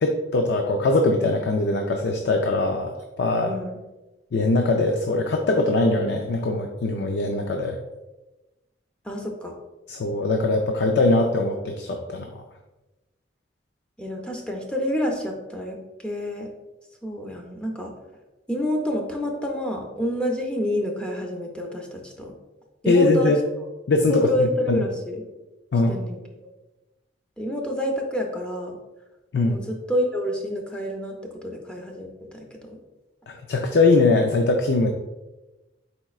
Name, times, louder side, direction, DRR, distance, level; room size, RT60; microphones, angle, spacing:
voice 1, 0.0-3.5 4.3-7.8 9.9-12.4 22.9-23.4 23.9-24.8 25.7-26.0 29.3-29.6 33.3-34.9, left 2 dB, 65° left, 3 dB, 0.4 m, -21 dB
voice 2, 3.4-3.8 9.0-9.6 14.0-15.8 16.0-16.5 17.0-17.9 18.5-22.3 22.8-23.3 24.1-25.2 25.9-26.2 27.4-28.8 29.5-32.8, equal, 5° left, 1 dB, 0.6 m, -28 dB
4.7 x 4.2 x 2.3 m, 1.1 s
head